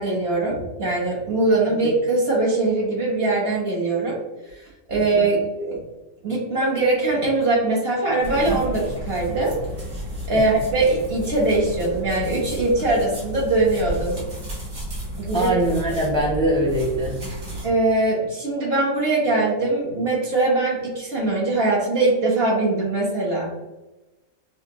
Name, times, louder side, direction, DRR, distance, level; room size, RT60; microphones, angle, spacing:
voice 1, 0.0-4.2 4.5-4.6 4.9-5.8 6.2-9.5 10.3-14.2 15.2-15.5 17.6-23.5, right 2 dB, 45° right, -3 dB, 1.3 m, -22 dB
sound 1, 8.2-17.7, equal, 60° right, 2.0 m, -32 dB
voice 2, 15.3-17.2, right 1 dB, 5° left, -4 dB, 0.5 m, -22 dB
6.2 x 2.4 x 3.0 m, 1.1 s
omnidirectional pair, 1.5 m